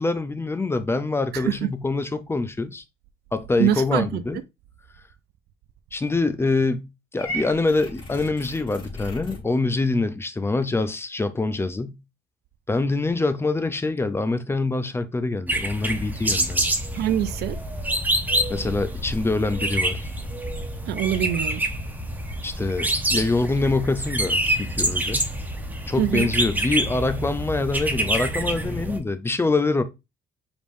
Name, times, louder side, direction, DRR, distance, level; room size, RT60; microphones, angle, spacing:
voice 1, 0.0-2.8 3.3-4.4 5.9-6.9 7.1-12.0 12.7-16.7 18.5-20.1 22.4-25.3 25.9-29.8, left 3 dB, 15° left, 0.5 m, -25 dB
voice 2, 1.3-1.7 3.6-4.2 17.0-17.6 20.9-21.6 26.0-26.3, right 12 dB, 75° right, 0.5 m, -24 dB
Purr / Meow, 7.2-9.4, equal, 30° left, 2.4 m, -35 dB
sound 1, 15.5-29.0, right 1 dB, 10° right, 0.8 m, -26 dB
5.1 x 3.5 x 2.6 m
cardioid pair, 110°, 17 cm